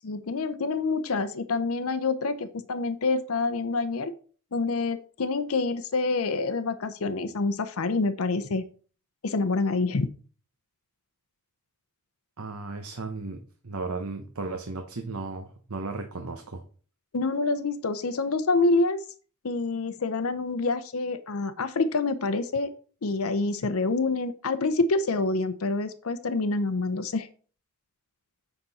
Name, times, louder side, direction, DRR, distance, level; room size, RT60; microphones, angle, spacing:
voice 1, 0.0-4.1 4.5-8.6 9.2-10.1 17.1-19.0 19.4-22.7 23.0-27.3, left 3 dB, 75° left, 12 dB, 0.7 m, -27 dB
voice 2, 12.4-13.4 13.6-16.6, right 3 dB, 85° right, 5 dB, 1.0 m, -35 dB
8.0 x 5.9 x 4.1 m, 0.41 s
head